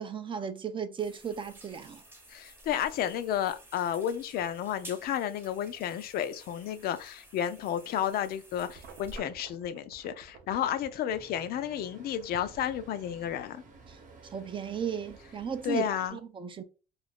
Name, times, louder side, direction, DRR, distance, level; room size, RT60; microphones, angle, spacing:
voice 1, 0.0-2.0 13.9-14.0 14.3-16.6, right 7 dB, 30° right, 0.4 m, -35 dB
sound 1, 1.0-9.2, right 1 dB, 15° right, 0.7 m, -52 dB
voice 2, 2.3-13.6 15.6-16.2, left 10 dB, 65° left, 0.4 m, -32 dB
sound 2, 8.6-11.4, right 6 dB, 85° right, 0.6 m, -52 dB
Traffic noise roadway noise, 11.1-16.1, right 3 dB, 50° right, 0.8 m, -53 dB
2.5 x 2.3 x 3.4 m
cardioid pair, 110°, 17 cm